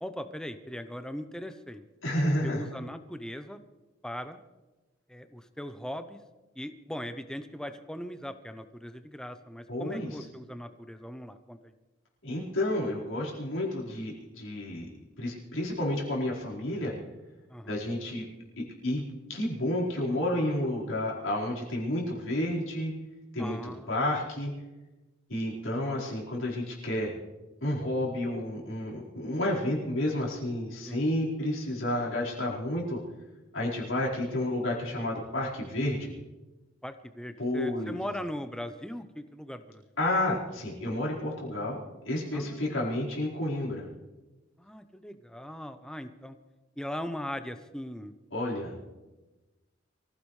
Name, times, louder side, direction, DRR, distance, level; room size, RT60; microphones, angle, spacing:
voice 1, 0.0-1.8 2.4-3.6 4.0-4.4 5.1-6.2 6.6-11.7 17.5-17.8 23.4-23.9 30.9-31.0 36.8-39.8 42.3-42.8 44.6-46.4 46.8-48.1, equal, 5° left, 9 dB, 0.7 m, -39 dB
voice 2, 2.0-2.7 9.7-10.1 12.2-14.9 15.2-16.9 17.7-18.2 18.6-19.0 19.3-22.9 23.3-24.5 25.3-27.1 27.6-33.0 33.5-36.1 37.4-38.0 40.0-43.9 48.3-48.7, left 1 dB, 85° left, -4 dB, 4.6 m, -30 dB
24.5 x 15.5 x 3.3 m, 1.1 s
head